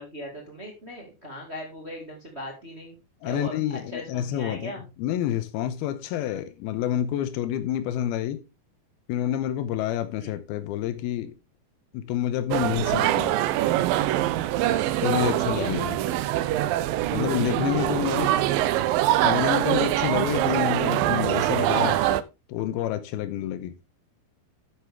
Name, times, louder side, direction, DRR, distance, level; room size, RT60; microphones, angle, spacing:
voice 1, 0.0-3.0 3.2-4.8 10.1-10.3 15.1-15.7 18.1-18.4, equal, 25° right, 1.8 m, -38 dB
voice 2, 3.2-4.7 5.0-8.5 9.1-11.3 11.9-13.4 15.0-16.0 17.1-18.3 19.2-22.0 22.5-23.8, left 11 dB, 90° left, 2.7 m, -28 dB
sound 1, 12.5-22.2, right 14 dB, 80° right, 2.2 m, -24 dB
11.5 x 7.6 x 3.5 m
omnidirectional pair, 4.4 m